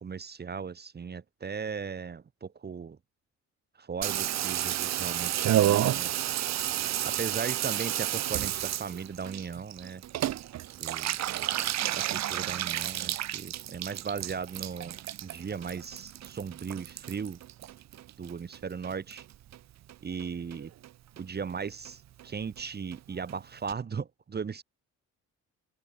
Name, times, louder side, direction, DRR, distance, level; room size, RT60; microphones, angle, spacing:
voice 1, 0.0-3.0 3.8-6.1 7.0-10.0 10.8-11.2 11.9-17.4 18.2-19.2 20.0-20.7 21.2-24.6, right 6 dB, 35° right, 1.1 m, -37 dB
Water tap faucet / Bathtub (filling or washing), 4.0-18.6 18.8-19.6 19.9-20.0 20.2-20.3 20.5-20.9 21.2-21.3 21.5-21.6 21.9-22.0 22.2-22.3 22.5-22.6 22.9-23.0 23.3-23.4 23.7-23.8, right 13 dB, 60° right, 0.8 m, -31 dB
cardioid pair, 90°, 30 cm